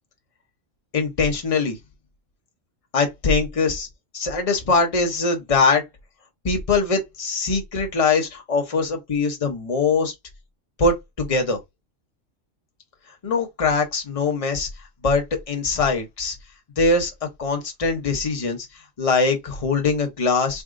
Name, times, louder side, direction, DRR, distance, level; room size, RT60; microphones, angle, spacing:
voice 1, 0.9-1.8 2.9-3.9 4.1-5.8 6.4-10.1 10.8-11.6 13.2-14.7 15.0-16.4 16.8-17.1 17.4-18.7 19.0-20.6, left 4 dB, 30° left, 0.8 m, -22 dB
3.5 x 2.1 x 3.7 m
omnidirectional pair, 1.3 m